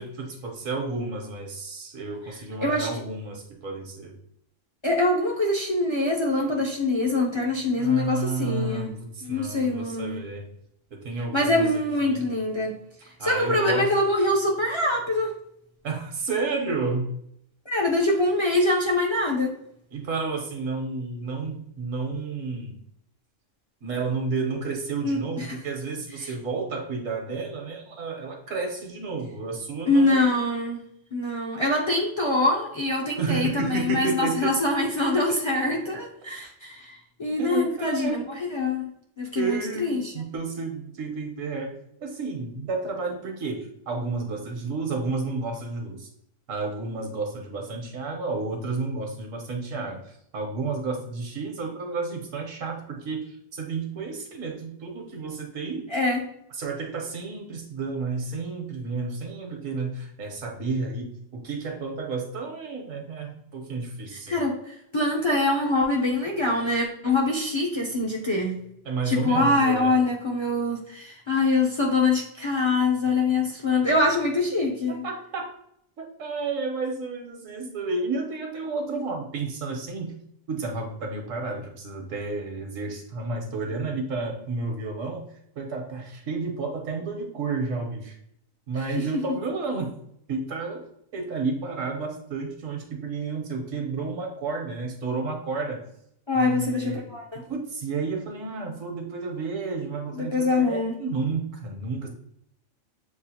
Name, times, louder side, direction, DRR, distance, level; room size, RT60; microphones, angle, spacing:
voice 1, 0.0-4.1 7.8-10.5 10.9-12.2 13.2-13.9 15.8-17.1 19.9-22.8 23.8-30.4 33.2-34.5 37.4-38.2 39.3-41.7 42.0-46.1 46.5-55.8 56.5-64.4 68.8-70.0 74.9-75.5 76.0-80.2 80.5-85.2 85.6-88.2 88.7-90.0 90.3-90.8 91.1-95.8 96.3-97.1 97.3-102.1, right 4 dB, 80° right, 2 dB, 1.3 m, -31 dB
voice 2, 4.8-8.9 9.2-10.2 11.3-12.8 13.2-15.4 17.7-19.5 25.0-25.6 26.2-26.3 29.9-30.8 31.1-38.9 39.2-40.1 55.9-56.2 64.3-68.6 69.1-75.0 89.0-89.2 96.3-97.4 100.1-101.0, left 2 dB, 35° left, -1 dB, 0.4 m, -24 dB
7.1 x 2.4 x 2.8 m, 0.73 s
omnidirectional pair, 1.4 m